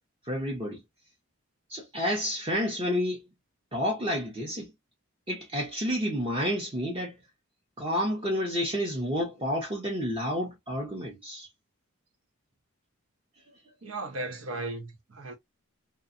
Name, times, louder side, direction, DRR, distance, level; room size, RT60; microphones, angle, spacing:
voice 1, 0.3-0.8 1.7-3.2 3.7-4.7 5.3-7.2 7.8-11.5, equal, 25° right, 0.7 m, -30 dB
voice 2, 13.8-15.3, right 2 dB, 75° right, 0.9 m, -36 dB
2.5 x 2.3 x 2.5 m
head